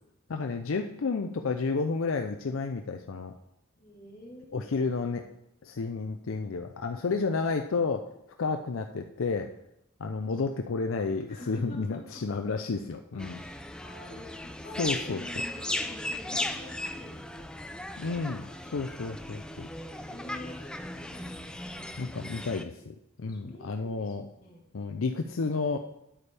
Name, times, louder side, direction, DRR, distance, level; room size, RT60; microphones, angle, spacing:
voice 1, 0.3-3.3 4.5-5.2 5.6-8.1 8.4-9.5 10.0-13.4 14.8-15.2 18.0-18.4 18.7-19.7 22.0-24.3 24.7-25.8, left 4 dB, 70° left, 5 dB, 0.5 m, -31 dB
voice 2, 3.8-4.7 10.0-10.4 10.6-10.7 11.3-12.0 13.1-18.8 19.9-22.2 23.2-24.6, left 1 dB, 45° left, -2 dB, 3.1 m, -48 dB
sound 1, 13.2-22.6, left 1 dB, 5° left, 0.5 m, -37 dB
10.5 x 8.4 x 3.4 m, 0.80 s
head